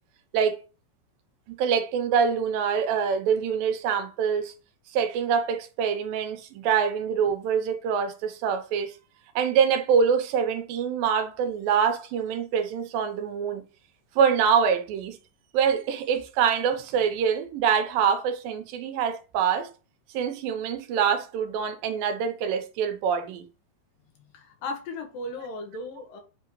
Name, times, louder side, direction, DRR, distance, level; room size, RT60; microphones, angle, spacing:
voice 1, 1.5-4.5 4.9-9.0 9.4-13.6 14.2-15.2 15.5-19.7 20.1-23.4, right 7 dB, 85° right, 2.5 m, -25 dB
voice 2, 24.2-26.2, left 2 dB, 75° left, 2.9 m, -36 dB
8.4 x 3.7 x 3.1 m
omnidirectional pair, 4.1 m